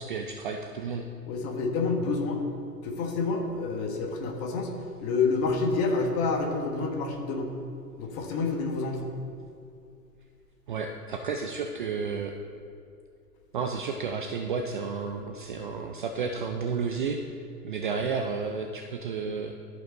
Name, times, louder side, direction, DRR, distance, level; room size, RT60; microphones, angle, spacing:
voice 1, 0.0-1.1 10.7-12.4 13.5-17.2 17.6-19.5, right 5 dB, 35° right, 4 dB, 0.4 m, -32 dB
voice 2, 1.3-2.4 2.8-4.7 5.0-7.5 8.0-9.1, left 4 dB, 30° left, 2 dB, 1.4 m, -28 dB
13.5 x 5.4 x 3.9 m, 2.5 s
hypercardioid pair, 120°, 49 cm